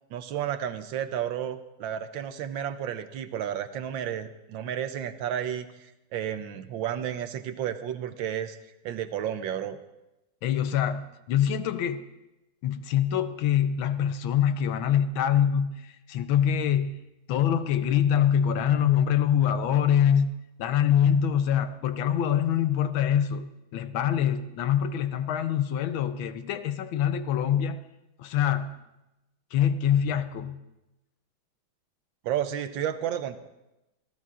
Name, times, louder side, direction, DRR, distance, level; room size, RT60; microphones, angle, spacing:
voice 1, 0.1-8.6 8.8-9.8 32.2-33.4, right 10 dB, 75° right, 11 dB, 1.3 m, -32 dB
voice 2, 10.4-12.0 12.6-17.0 17.3-20.3 20.6-27.8 28.2-28.8 29.5-30.6, left 9 dB, 75° left, 11 dB, 1.5 m, -24 dB
26.5 x 14.0 x 2.5 m, 0.95 s
omnidirectional pair, 2.3 m